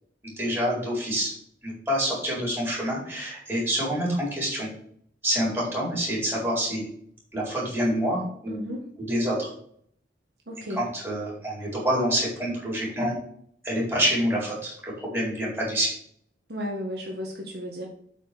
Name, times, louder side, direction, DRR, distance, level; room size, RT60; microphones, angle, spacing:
voice 1, 0.4-1.3 1.6-4.7 5.2-6.8 7.3-8.6 9.0-9.5 10.8-13.2 13.6-15.9, equal, 15° right, -6 dB, 4.7 m, -27 dB
voice 2, 8.5-8.8 10.5-10.8 16.5-17.9, equal, 60° right, -1 dB, 1.7 m, -33 dB
8.6 x 5.2 x 7.0 m, 0.65 s
head